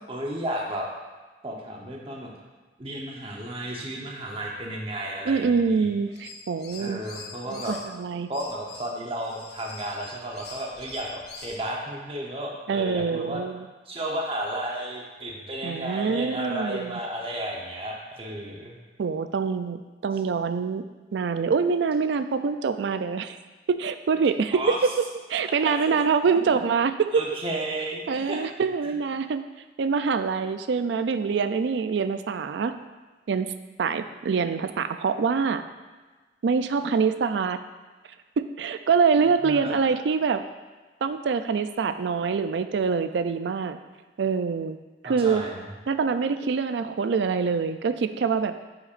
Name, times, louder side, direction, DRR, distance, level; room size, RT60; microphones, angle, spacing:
voice 1, 0.1-0.9 1.4-2.3 2.8-5.9 6.8-7.7 8.3-13.4 13.9-18.8 24.5-24.8 26.3-26.6 27.1-28.4 28.8-28.9 39.2-39.7 45.0-45.7, right 1 dB, 30° right, -1 dB, 0.9 m, -33 dB
voice 2, 5.3-7.0 7.5-8.3 12.7-13.6 15.6-16.9 19.0-19.8 20.0-20.8 21.1-23.4 23.7-24.9 25.3-27.2 28.1-29.4 29.8-32.7 33.3-33.5 33.8-35.6 36.4-37.6 38.4-40.4 41.0-43.8 44.2-44.8 45.0-45.4 45.9-48.5, right 5 dB, 75° right, 10 dB, 0.4 m, -25 dB
sound 1, 6.1-7.9 8.3-11.6, left 4 dB, 65° left, 0.8 m, -44 dB
8.2 x 5.8 x 2.5 m, 1.3 s
head